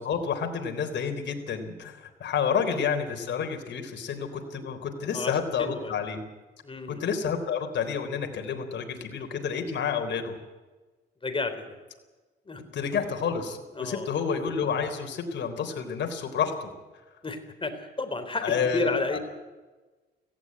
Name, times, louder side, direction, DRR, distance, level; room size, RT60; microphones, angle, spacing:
voice 1, 0.0-6.2 7.0-10.4 12.7-16.7 18.4-19.2, left 6 dB, 65° left, 5 dB, 3.7 m, -29 dB
voice 2, 5.1-5.9 6.6-7.0 11.2-11.8 12.5-12.6 13.8-14.1 17.2-19.2, left 3 dB, 25° left, 8 dB, 3.9 m, -32 dB
17.5 x 16.0 x 9.7 m, 1.2 s
cardioid pair, 90°, 20 cm